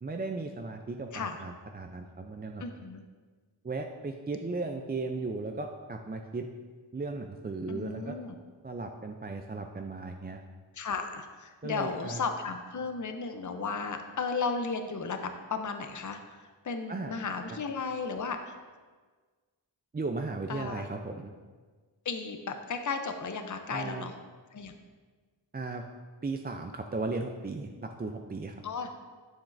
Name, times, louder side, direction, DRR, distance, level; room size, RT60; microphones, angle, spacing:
voice 1, 0.0-2.6 3.6-6.5 6.9-8.2 8.6-10.4 11.6-12.2 16.9-17.1 19.9-21.3 23.7-24.1 25.5-25.8 26.2-27.7 28.0-28.6, right 3 dB, 20° right, 4 dB, 0.4 m, -36 dB
voice 2, 2.6-3.0 7.7-8.3 10.7-18.6 20.5-20.8 22.0-24.1 24.5-24.7 28.6-28.9, left 5 dB, 40° left, 6 dB, 0.6 m, -35 dB
7.3 x 7.2 x 2.6 m, 1.4 s
wide cardioid pair, 45°, 46 cm